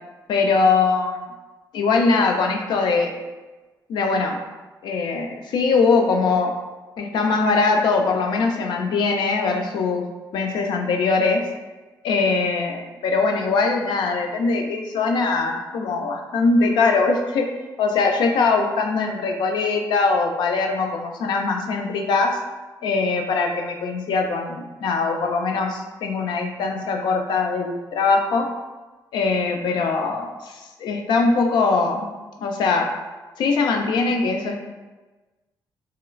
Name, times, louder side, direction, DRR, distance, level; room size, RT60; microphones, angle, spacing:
voice 1, 0.3-1.2 1.7-3.1 3.9-4.4 4.8-6.6 7.0-10.1 10.3-11.5 12.0-22.4 22.8-28.5 29.1-32.1 32.4-32.9 33.4-34.5, left 4 dB, 75° left, 3 dB, 0.3 m, -21 dB
3.0 x 2.9 x 2.4 m, 1.2 s
cardioid pair, 155°, 8 cm